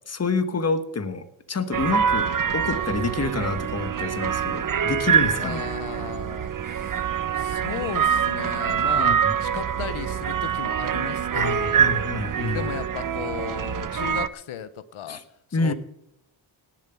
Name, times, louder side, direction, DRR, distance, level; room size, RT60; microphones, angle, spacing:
voice 1, 0.1-5.6 8.9-9.3 11.3-12.6 15.1-15.2 15.5-15.7, left 3 dB, 30° left, 11 dB, 1.3 m, -28 dB
sound 1, 1.7-14.3, right 7 dB, 45° right, 0.7 m, -25 dB
voice 2, 5.4-7.1 7.3-11.9 12.5-15.2 15.5-15.7, left 9 dB, 90° left, 14 dB, 0.8 m, -36 dB
18.0 x 7.4 x 7.0 m, 0.84 s
wide cardioid pair, 90°, 47 cm